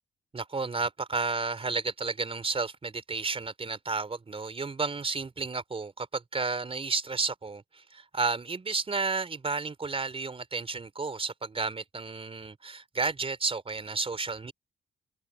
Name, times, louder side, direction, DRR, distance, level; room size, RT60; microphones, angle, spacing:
voice 1, 0.3-14.5, right 4 dB, 30° right, 4.0 m, -32 dB
open air
cardioid pair, 90°, 20 cm